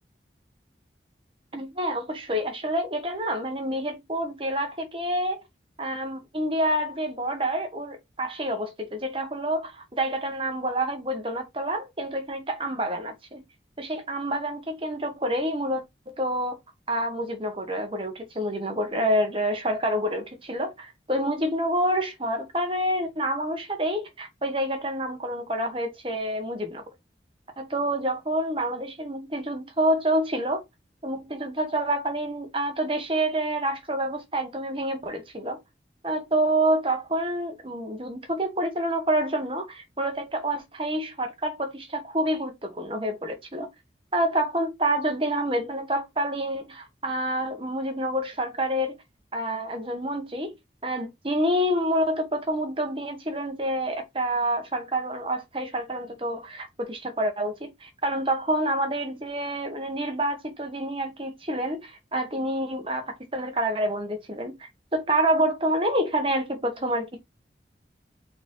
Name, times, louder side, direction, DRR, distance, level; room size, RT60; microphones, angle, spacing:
voice 1, 1.5-5.4 5.8-13.4 13.8-16.6 16.9-26.8 27.6-30.6 31.0-35.6 36.0-43.7 44.1-49.0 49.3-50.5 50.8-67.2, right 1 dB, 30° right, 1.7 m, -28 dB
5.8 x 4.0 x 4.6 m
head